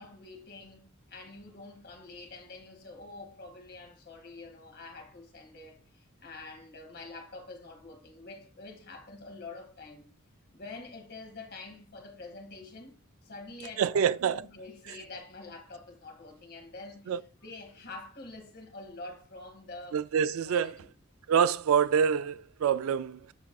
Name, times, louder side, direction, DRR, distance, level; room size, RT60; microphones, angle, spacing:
voice 1, 0.0-10.1 10.5-13.0 13.2-17.1 17.4-20.0 20.4-20.8, left 3 dB, 50° left, 1.9 m, -46 dB
voice 2, 13.8-14.5 17.1-17.2 19.9-20.7 21.3-23.3, right 7 dB, 80° right, 0.3 m, -26 dB
14.0 x 4.7 x 2.3 m
head